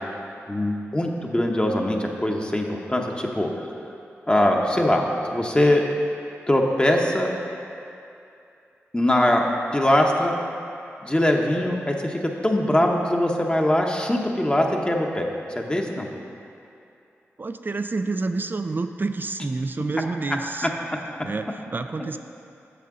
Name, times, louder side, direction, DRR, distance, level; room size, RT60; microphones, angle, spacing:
voice 1, 0.5-3.5 4.3-5.8 6.5-7.3 8.9-9.4 9.7-10.3 11.0-15.3 15.5-16.1, left 1 dB, 20° left, 0 dB, 0.8 m, -22 dB
voice 2, 17.4-20.7 21.2-22.2, right 3 dB, 40° right, 9 dB, 0.4 m, -28 dB
8.3 x 6.6 x 3.7 m, 2.6 s
cardioid pair, 40°, 5 cm